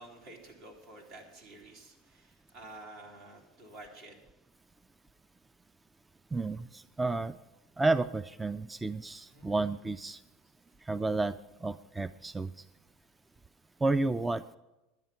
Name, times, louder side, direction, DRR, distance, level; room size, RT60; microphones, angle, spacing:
voice 1, 0.0-4.2 9.3-9.5, right 2 dB, 70° right, 0 dB, 3.1 m, -50 dB
voice 2, 6.3-7.4 7.8-10.2 10.8-12.5 13.8-14.4, right 3 dB, 15° right, 15 dB, 0.4 m, -31 dB
10.5 x 10.5 x 5.8 m, 0.99 s
supercardioid pair, 100°, 0 cm